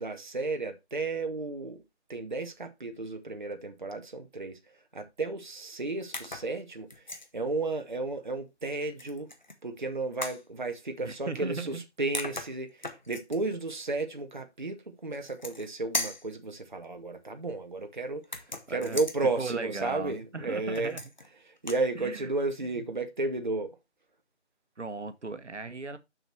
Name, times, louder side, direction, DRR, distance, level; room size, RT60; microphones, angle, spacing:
voice 1, 0.0-1.8 2.1-4.6 4.9-7.0 7.3-9.3 9.6-21.0 21.5-23.7, right 3 dB, 40° right, 0.9 m, -33 dB
sound 1, 6.1-6.5 6.9-7.3 9.0-9.6 10.2-10.4 11.8-11.9 12.1-13.4 15.1-15.7 15.9-16.3 18.2-19.2 20.7-21.3 21.6-21.8, left 2 dB, 40° left, 1.1 m, -37 dB
voice 2, 11.0-11.8 18.7-19.0 19.4-21.0 21.9-22.3 24.8-26.0, right 3 dB, 75° right, 1.2 m, -37 dB
6.5 x 6.0 x 4.4 m
figure-of-eight pair, 170°, 35 cm